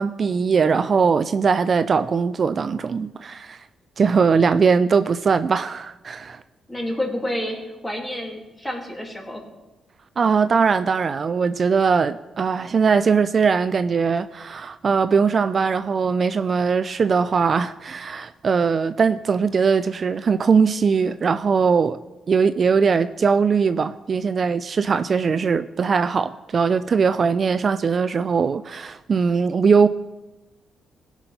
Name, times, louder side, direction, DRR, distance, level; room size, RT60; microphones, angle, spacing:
voice 1, 0.0-3.6 4.0-6.4 10.2-22.0 22.3-29.9, right 5 dB, 45° right, 12 dB, 0.4 m, -20 dB
voice 2, 6.7-9.4, left 1 dB, 10° left, 0 dB, 2.6 m, -29 dB
17.0 x 6.0 x 5.4 m, 1.1 s
cardioid pair, 90°, 0 cm